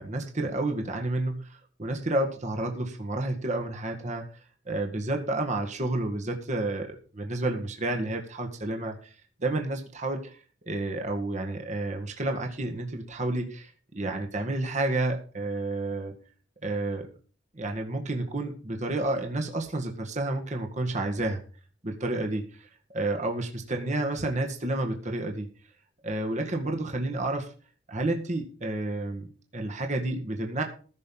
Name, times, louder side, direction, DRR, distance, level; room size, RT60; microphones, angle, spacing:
voice 1, 0.0-4.2 4.7-9.1 9.4-10.4 10.7-16.1 16.6-17.1 17.5-21.4 21.8-22.7 22.9-25.5 26.0-27.5 27.9-30.6, right 2 dB, 40° right, 3 dB, 1.9 m, -30 dB
15.5 x 6.6 x 5.7 m, 0.39 s
head